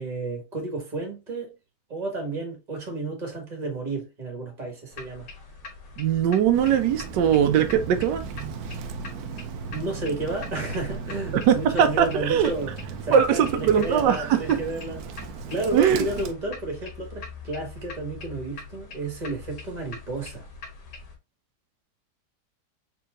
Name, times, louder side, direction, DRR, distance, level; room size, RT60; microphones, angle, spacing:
voice 1, 0.0-1.5 1.9-5.3 9.7-12.7 13.0-15.1 15.5-20.5, right 2 dB, 25° right, 1.5 m, -32 dB
sound 1, 4.9-21.2, left 4 dB, 85° left, 1.8 m, -43 dB
voice 2, 6.0-8.2 11.3-12.5 13.1-14.6 15.7-16.0, right 8 dB, 90° right, 1.3 m, -21 dB
Bird, 6.5-16.3, right 5 dB, 70° right, 1.0 m, -36 dB
4.5 x 3.6 x 2.4 m
omnidirectional pair, 1.8 m